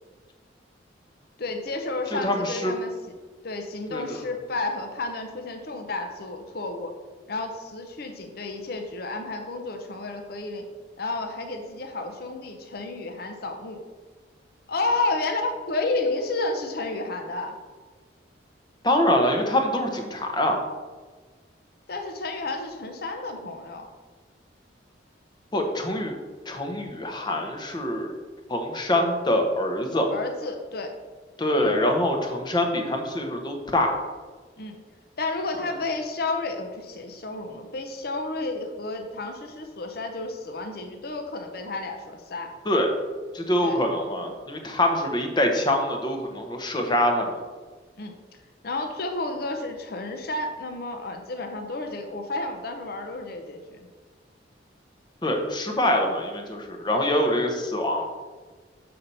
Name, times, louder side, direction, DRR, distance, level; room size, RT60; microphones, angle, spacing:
voice 1, 1.4-2.9 3.4-6.9 7.3-10.7 11.0-13.8 14.7-17.5 21.9-23.9 30.1-30.9 34.6-34.8 35.2-42.5 43.6-43.8 48.0-48.2 48.6-53.8, left 2 dB, 55° left, 4 dB, 0.7 m, -31 dB
voice 2, 2.1-2.7 3.9-4.3 18.8-20.6 25.5-26.1 26.5-28.1 28.5-30.1 31.4-34.0 42.7-42.9 43.3-47.3 55.2-58.1, left 1 dB, 25° left, 3 dB, 0.8 m, -24 dB
6.6 x 4.2 x 5.4 m, 1.4 s
head